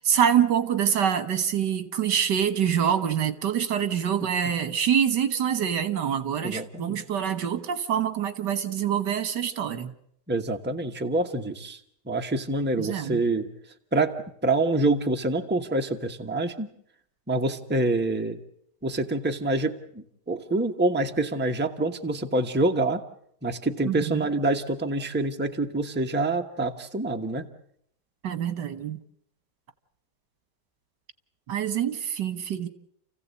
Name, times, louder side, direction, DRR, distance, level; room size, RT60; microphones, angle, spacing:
voice 1, 0.0-9.9 12.8-13.2 23.8-24.2 28.2-29.0 31.5-32.7, right 8 dB, 80° right, 2.0 m, -25 dB
voice 2, 6.4-7.0 10.3-11.8 12.1-13.5 13.9-16.7 17.3-18.4 18.8-23.0 23.4-27.5, right 2 dB, 5° right, 1.1 m, -26 dB
29.0 x 15.5 x 8.3 m
omnidirectional pair, 1.8 m